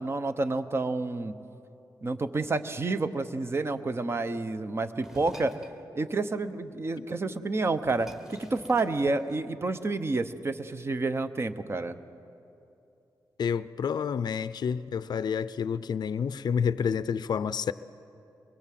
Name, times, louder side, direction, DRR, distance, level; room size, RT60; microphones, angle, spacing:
voice 1, 0.0-1.3 2.0-5.6 5.9-12.0, right 3 dB, 35° right, 0.9 m, -29 dB
sound 1, 5.0-5.8 7.2-7.3 7.6-9.6, equal, 5° right, 1.5 m, -48 dB
voice 2, 13.4-17.7, left 7 dB, 65° left, 0.5 m, -29 dB
24.0 x 21.0 x 7.6 m
wide cardioid pair, 115°, 8 cm